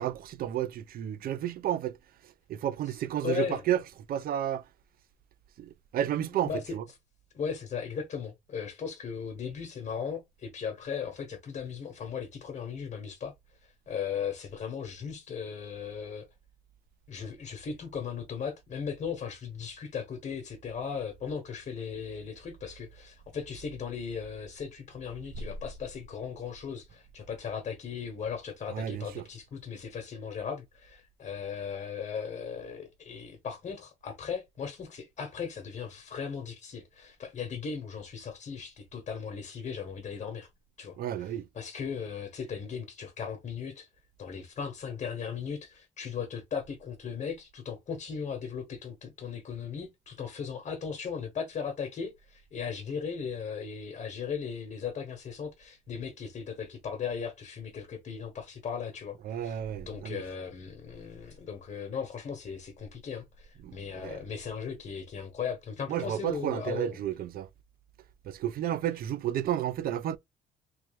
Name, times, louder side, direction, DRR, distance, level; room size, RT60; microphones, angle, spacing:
voice 1, 0.0-2.0 2.2-3.8 4.1-4.6 5.6-6.8 28.7-29.2 41.0-41.5 59.2-60.2 63.6-64.2 65.9-67.5 68.2-70.2, right 11 dB, 55° right, 0.5 m, -32 dB
voice 2, 3.2-3.6 6.3-6.8 7.3-13.3 13.6-16.3 17.1-40.5 40.8-43.9 44.2-67.0, left 6 dB, 45° left, 1.2 m, -37 dB
3.2 x 3.1 x 3.3 m
cardioid pair, 105°, 18 cm